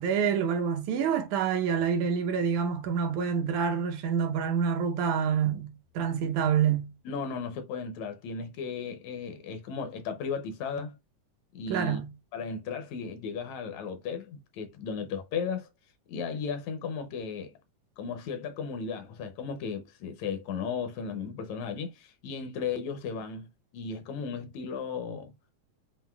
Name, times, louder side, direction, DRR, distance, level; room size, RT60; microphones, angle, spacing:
voice 1, 0.0-5.7 6.0-6.9 11.7-12.1, right 7 dB, 75° right, 2.2 m, -27 dB
voice 2, 7.1-11.0 11.5-12.0 12.3-15.7 16.1-17.5 18.0-23.5 23.7-25.3, left 5 dB, 75° left, 1.9 m, -35 dB
7.4 x 2.6 x 2.3 m
omnidirectional pair, 3.5 m